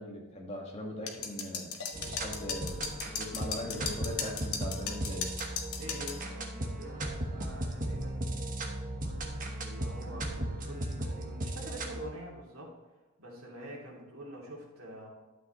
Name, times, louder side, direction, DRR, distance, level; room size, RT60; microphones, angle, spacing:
voice 1, 0.0-2.9 3.2-5.4, left 1 dB, 30° left, -1 dB, 1.7 m, -40 dB
sound 1, 1.1-6.2, left 6 dB, 80° left, 1.1 m, -37 dB
sound 2, 1.9-12.1, right 1 dB, 35° right, 1.2 m, -36 dB
voice 2, 5.7-8.7 9.6-12.7 13.2-15.1, right 1 dB, 75° right, -2 dB, 2.7 m, -46 dB
12.0 x 7.9 x 3.1 m, 1.2 s
head